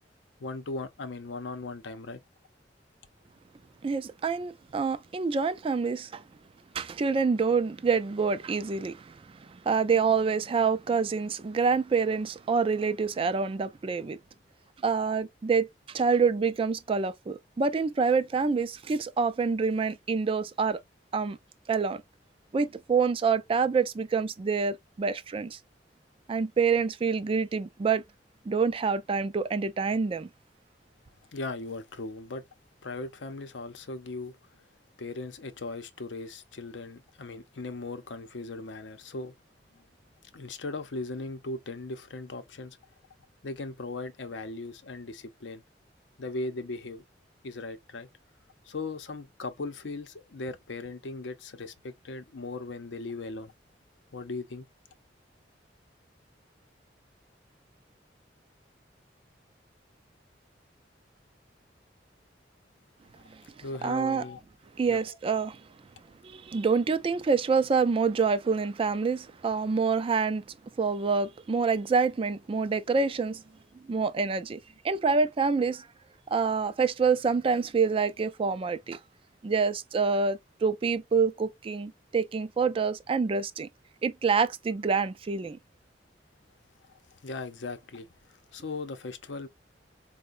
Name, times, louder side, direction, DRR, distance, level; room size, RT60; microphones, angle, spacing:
voice 1, 0.4-2.2 31.3-32.4 32.8-34.6 35.0-39.3 39.7-39.8 40.3-42.8 43.4-45.6 46.2-47.0 47.4-48.1 48.6-53.5 54.1-54.7 63.6-64.4 64.9-65.2 87.2-89.5, left 3 dB, 85° left, 0.6 m, -38 dB
voice 2, 3.8-6.2 6.7-14.2 14.8-20.8 21.1-21.4 21.7-22.0 22.5-25.6 26.3-28.0 28.5-30.3 63.3-64.2 64.8-65.6 66.2-70.4 70.8-73.4 73.9-74.6 74.8-75.9 76.3-79.0 79.4-83.7 84.0-85.6, right 5 dB, 30° right, 0.3 m, -27 dB
4.5 x 2.1 x 2.4 m
head